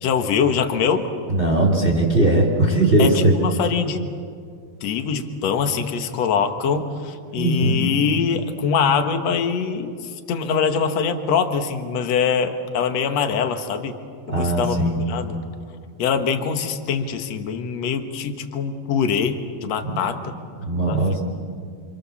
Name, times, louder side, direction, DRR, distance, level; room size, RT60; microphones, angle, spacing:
voice 1, 0.0-1.1 3.0-4.0 4.8-14.0 14.4-14.8 15.1-15.4 16.0-20.3 20.8-21.0, left 6 dB, 65° left, 7 dB, 1.7 m, -23 dB
voice 2, 1.3-3.3 7.3-7.8 14.3-15.0 19.9-20.0 20.6-21.2, right 1 dB, 15° right, 0 dB, 2.8 m, -19 dB
28.5 x 28.0 x 7.1 m, 2.2 s
omnidirectional pair, 5.0 m